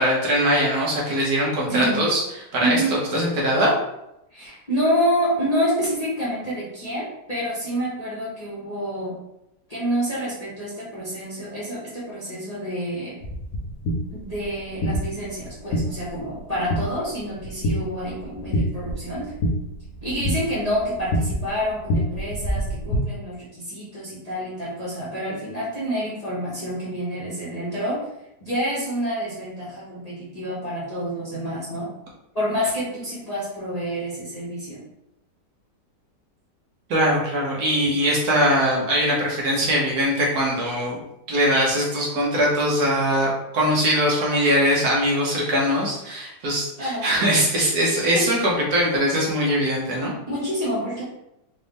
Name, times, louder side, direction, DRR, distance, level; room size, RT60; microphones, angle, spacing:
voice 1, 0.0-2.2 2.5-3.7 36.9-41.0 41.3-50.1, equal, 65° right, -3 dB, 1.4 m, -21 dB
voice 2, 1.7-2.0 2.6-3.0 4.3-9.1 9.7-13.2 14.1-19.3 20.0-28.1 28.4-31.9 32.3-34.8 46.8-47.1 48.1-48.2 50.3-51.0, equal, 30° left, -8 dB, 0.8 m, -28 dB
walking hard ground, 13.2-23.0, equal, 65° left, 1.1 m, -28 dB
4.0 x 2.6 x 3.4 m, 0.86 s
omnidirectional pair, 1.8 m